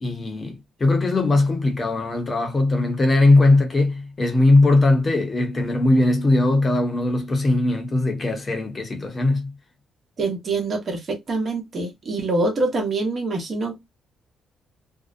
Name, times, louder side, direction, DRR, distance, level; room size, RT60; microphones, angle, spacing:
voice 1, 0.0-9.5, left 2 dB, 30° left, 0.9 m, -19 dB
voice 2, 10.2-13.8, right 2 dB, 45° right, 0.9 m, -25 dB
2.6 x 2.0 x 2.5 m
cardioid pair, 90°, 0 cm